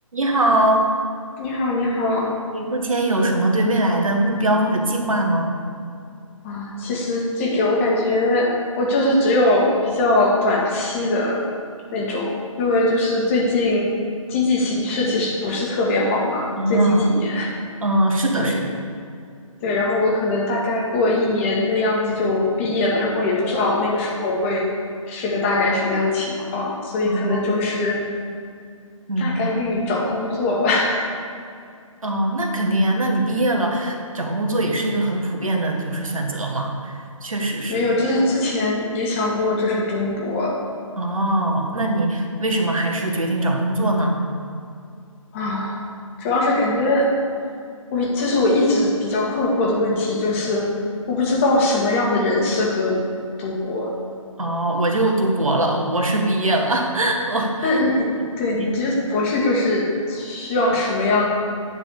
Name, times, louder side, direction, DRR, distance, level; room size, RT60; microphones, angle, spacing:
voice 1, 0.1-0.9 2.5-5.5 16.6-17.0 17.8-18.6 27.0-27.4 29.1-29.5 32.0-37.8 41.0-44.2 54.4-57.8 58.5-58.7, right 1 dB, 70° right, 1 dB, 1.6 m, -21 dB
voice 2, 1.4-2.4 6.4-11.4 11.9-12.3 12.6-13.9 14.3-17.5 18.3-18.6 19.6-24.7 25.1-28.0 29.2-31.1 37.7-40.5 45.3-45.8 46.2-47.1 47.9-50.7 51.1-53.0 53.4-53.9 57.6-58.1 58.4-61.3, left 2 dB, 25° left, -3 dB, 1.5 m, -21 dB
9.7 x 4.0 x 6.9 m, 2.3 s
figure-of-eight pair, 145°, 18 cm